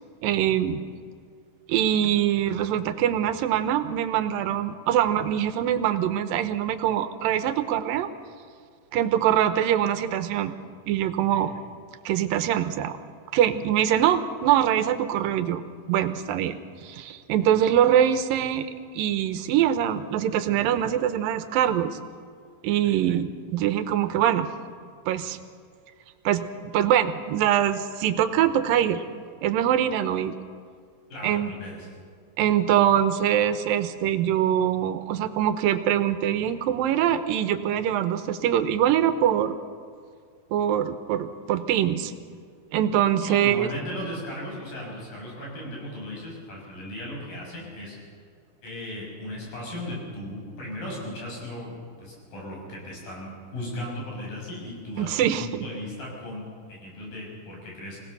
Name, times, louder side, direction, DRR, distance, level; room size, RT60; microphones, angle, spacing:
voice 1, 0.2-0.8 1.7-8.1 8.9-10.5 10.9-11.5 12.1-13.0 13.3-15.6 15.9-16.6 16.8-22.0 22.6-24.5 25.1-25.4 26.3-29.0 29.4-30.4 31.2-31.5 32.4-39.6 40.5-42.1 42.7-43.7 55.0-55.7, right 10 dB, 85° right, 11 dB, 2.6 m, -23 dB
voice 2, 31.1-31.9 43.2-48.0 48.6-58.0, left 1 dB, 75° left, -2 dB, 8.2 m, -36 dB
25.0 x 18.0 x 6.7 m, 2.1 s
omnidirectional pair, 4.0 m